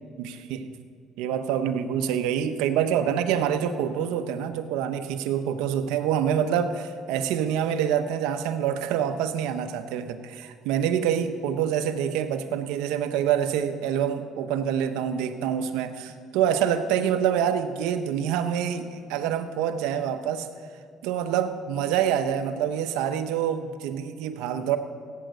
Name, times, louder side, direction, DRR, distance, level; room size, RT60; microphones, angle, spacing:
voice 1, 0.2-0.7 1.2-20.5 21.0-24.8, right 9 dB, 90° right, 8 dB, 0.9 m, -26 dB
16.5 x 9.2 x 6.6 m, 2.1 s
cardioid pair, 100°, 0 cm